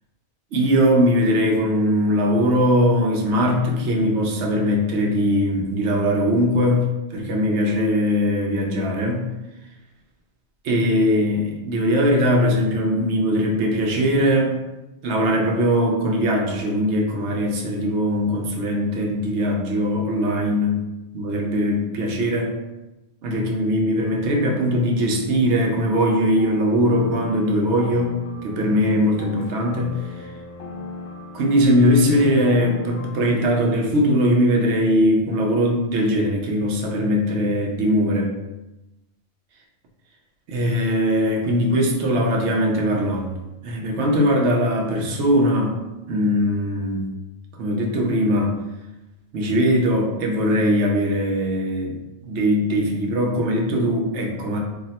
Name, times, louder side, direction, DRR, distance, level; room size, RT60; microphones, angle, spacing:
voice 1, 0.5-9.3 10.6-14.6 15.0-20.8 21.1-22.6 23.2-30.3 31.3-38.3 40.5-45.8 46.1-47.1 47.5-48.5 49.3-54.6, equal, 90° right, 1 dB, 0.9 m, -20 dB
sound 1, 26.4-33.5, left 3 dB, 90° left, 0.9 m, -38 dB
2.7 x 2.0 x 3.9 m, 0.99 s
omnidirectional pair, 1.1 m